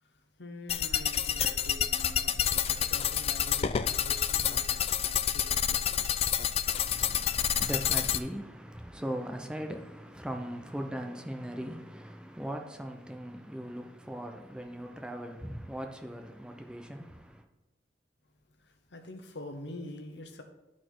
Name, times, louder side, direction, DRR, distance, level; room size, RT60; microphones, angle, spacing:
voice 1, 0.0-6.3 18.6-20.4, left 1 dB, 90° left, 1.0 m, -46 dB
sound 1, 0.7-8.2, left 9 dB, 35° left, 0.3 m, -29 dB
voice 2, 6.7-17.4, equal, 5° right, 0.6 m, -39 dB
11.0 x 4.3 x 4.6 m
head